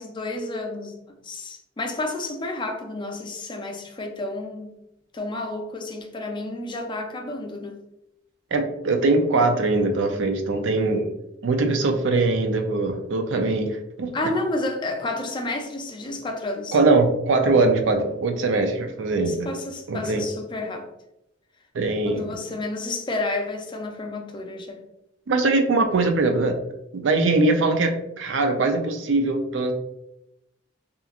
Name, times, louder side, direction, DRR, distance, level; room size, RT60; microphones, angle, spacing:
voice 1, 0.0-4.8 5.1-7.8 14.1-16.8 19.2-20.9 22.0-24.8, left 2 dB, 25° left, 0.4 m, -31 dB
voice 2, 8.5-11.1 11.4-14.1 16.7-19.5 19.9-20.3 21.7-22.4 25.3-26.6 26.9-29.7, right 3 dB, 70° right, 0.4 m, -22 dB
2.9 x 2.4 x 2.4 m
head